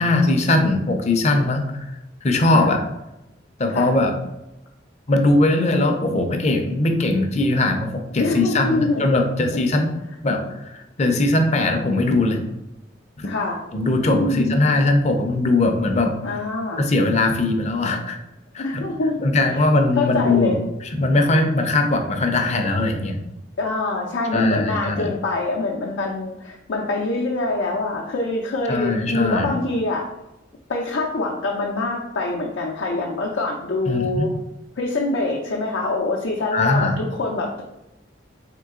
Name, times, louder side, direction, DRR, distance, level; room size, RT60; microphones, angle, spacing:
voice 1, 0.0-1.9 2.2-2.8 3.6-4.1 5.1-9.9 10.2-12.4 13.2-13.3 13.7-16.4 16.8-18.2 18.5-18.8 19.2-20.5 20.8-23.2 24.3-25.1 28.7-29.5 33.9-34.3 36.5-37.0, left 2 dB, 35° left, 5 dB, 0.5 m, -20 dB
voice 2, 2.5-2.8 3.7-3.9 8.2-9.1 9.8-9.9 13.2-13.6 14.2-14.6 16.2-16.8 18.6-19.2 19.5-19.6 20.0-20.6 23.6-30.1 30.7-34.3 34.8-37.6, left 2 dB, 85° left, -2 dB, 0.6 m, -25 dB
3.7 x 3.1 x 3.6 m, 0.93 s
head